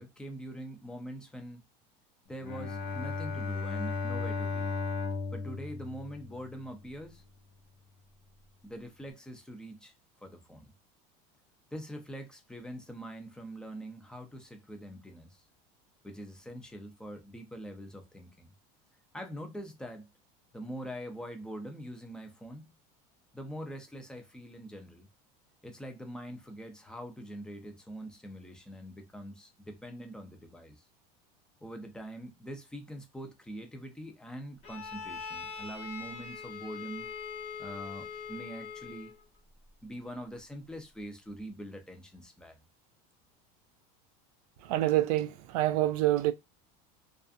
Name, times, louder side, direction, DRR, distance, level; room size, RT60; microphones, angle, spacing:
voice 1, 0.0-1.6 2.3-4.8 5.3-7.2 8.6-9.9 10.2-10.7 11.7-15.4 16.0-18.5 19.1-20.1 20.5-22.7 23.3-25.1 25.6-30.8 31.6-37.1 37.6-39.1 39.8-42.6, equal, 5° left, 0.5 m, -43 dB
Bowed string instrument, 2.4-6.8, left 4 dB, 65° left, 0.9 m, -35 dB
Bowed string instrument 2, 34.6-39.2, left 6 dB, 35° left, 1.0 m, -42 dB
voice 2, 44.6-46.3, right 15 dB, 85° right, 0.4 m, -27 dB
2.4 x 2.4 x 2.4 m
supercardioid pair, 130°, 19 cm